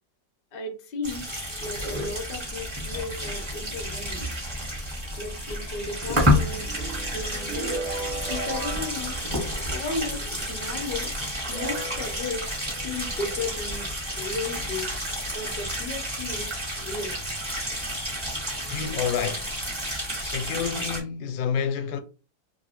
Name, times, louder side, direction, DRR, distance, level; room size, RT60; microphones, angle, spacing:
voice 1, 0.5-1.2 1.6-4.2 5.2-6.7 7.0-7.9 8.3-9.4 9.7-11.1 11.5-12.5 12.8-13.9 14.2-14.9 15.3-16.5 16.8-17.2 17.7-17.8, left 3 dB, 50° left, 0.7 m, -34 dB
sound 1, 1.0-21.0, equal, 20° right, 1.0 m, -30 dB
sound 2, 6.4-10.1 10.9-11.0 11.5-13.4, right 3 dB, 65° right, 0.7 m, -37 dB
voice 2, 18.7-19.5 20.2-22.0, left 7 dB, 90° left, 1.3 m, -29 dB
2.9 x 2.7 x 2.9 m
omnidirectional pair, 2.1 m